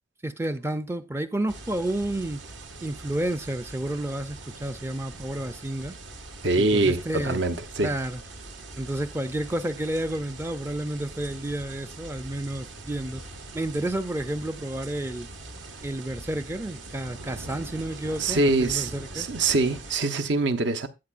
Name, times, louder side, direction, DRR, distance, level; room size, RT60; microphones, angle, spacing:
voice 1, 0.2-2.4 2.8-6.0 6.6-7.4 7.8-8.2 8.7-13.2 13.5-15.3 15.8-19.3, right 1 dB, 15° right, 0.4 m, -30 dB
sound 1, 1.5-20.0, right 2 dB, 85° right, 1.7 m, -42 dB
voice 2, 6.4-7.9 18.2-20.9, right 2 dB, 70° right, 0.9 m, -24 dB
13.0 x 7.7 x 2.4 m
head